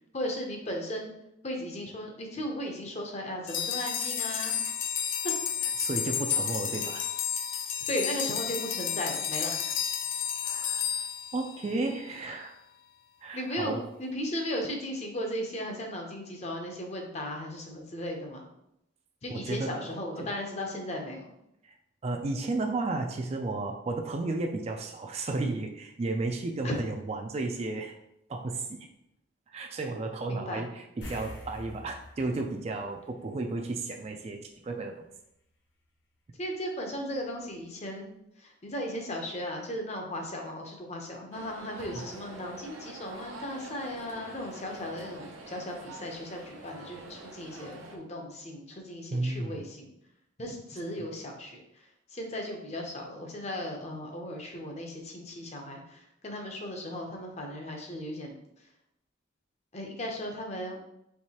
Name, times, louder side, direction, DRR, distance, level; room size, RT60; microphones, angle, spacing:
voice 1, 0.1-1.1 1.4-4.6 5.2-5.3 7.9-9.6 13.3-18.5 19.2-21.2 26.6-26.7 30.3-30.6 36.4-38.1 38.6-49.9 50.4-51.6 52.1-58.3 59.7-60.8, equal, 35° left, 2 dB, 0.7 m, -36 dB
sound 1, 3.5-12.0, left 8 dB, 80° left, 0.5 m, -31 dB
voice 2, 5.8-7.0 9.5-9.7 10.4-11.1 11.3-12.5 13.2-13.9 19.3-19.8 20.2-20.3 21.6-21.7 22.0-27.9 28.3-28.9 29.5-35.1 41.9-42.0 49.1-49.7 51.0-51.1, right 2 dB, 30° right, 3 dB, 0.3 m, -33 dB
sound 2, 31.0-33.8 34.1-34.3 37.2-37.3 37.6-37.7, left 1 dB, 60° left, 0.9 m, -45 dB
sound 3, 41.3-48.0, right 2 dB, 85° right, 0.7 m, -46 dB
4.6 x 3.1 x 2.9 m, 0.80 s
head